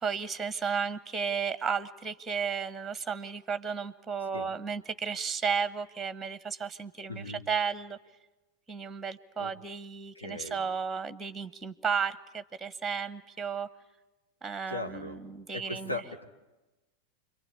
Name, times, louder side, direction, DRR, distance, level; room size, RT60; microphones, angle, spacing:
voice 1, 0.0-8.0 8.7-13.7 14.4-15.9, right 6 dB, 10° right, 15 dB, 1.1 m, -33 dB
voice 2, 7.1-7.4 9.4-9.5 10.1-10.6 14.7-15.2 15.5-16.2, left 2 dB, 80° left, 2 dB, 2.7 m, -38 dB
29.5 x 22.5 x 8.6 m, 1.1 s
figure-of-eight pair, 90°, 0 cm